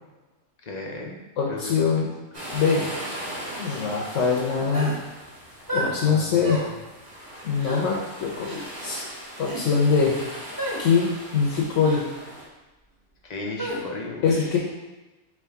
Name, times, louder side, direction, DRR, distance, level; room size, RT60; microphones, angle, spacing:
voice 1, 0.6-1.2 1.5-1.9 2.5-2.9 5.7-6.8 13.2-14.6, left 2 dB, 50° left, -1 dB, 0.5 m, -36 dB
voice 2, 1.4-2.1 2.5-2.9 3.6-4.9 5.7-6.6 7.4-9.0 9.4-10.2 10.8-12.0 14.2-14.6, left 5 dB, 75° left, -3 dB, 1.0 m, -23 dB
sound 1, 2.3-12.4, equal, 40° right, 1.2 m, -39 dB
sound 2, 4.7-5.0 5.7-5.9 6.4-6.7 7.6-7.8 8.4-8.6 9.4-9.6 10.6-10.8 11.8-12.0 13.6-13.8, equal, 20° right, 0.8 m, -30 dB
3.6 x 3.0 x 4.5 m, 1.1 s
omnidirectional pair, 1.3 m